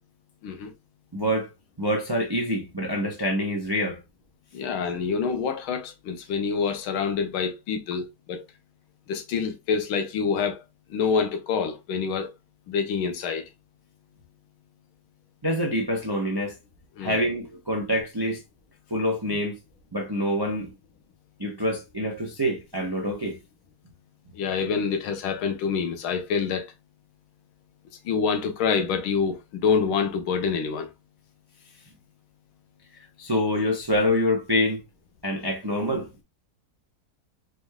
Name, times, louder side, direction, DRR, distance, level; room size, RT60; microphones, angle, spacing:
voice 1, 0.4-0.7 4.5-8.4 9.1-10.6 10.9-12.3 12.7-13.5 17.0-17.2 24.3-26.7 28.0-30.9, left 6 dB, 85° left, 1.7 m, -26 dB
voice 2, 1.1-1.5 1.8-4.0 5.0-5.1 15.4-16.6 17.0-18.4 18.9-19.6 19.9-20.7 21.4-23.4 33.2-34.8 35.2-36.1, equal, 35° right, 0.3 m, -26 dB
5.1 x 3.3 x 2.3 m
omnidirectional pair, 2.2 m